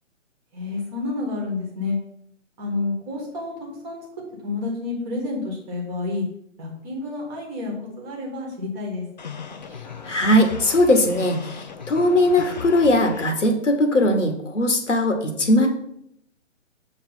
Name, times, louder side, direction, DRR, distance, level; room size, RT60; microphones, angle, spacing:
voice 1, 0.5-2.0 2.6-4.0 4.4-6.2 6.6-9.0, left 3 dB, 20° right, -1 dB, 1.4 m, -29 dB
sound 1, 9.2-13.3, left 5 dB, 35° left, 0.5 m, -36 dB
voice 2, 10.0-15.7, left 1 dB, 70° left, 5 dB, 1.4 m, -19 dB
6.5 x 3.2 x 5.6 m, 0.75 s
figure-of-eight pair, 140°, 38 cm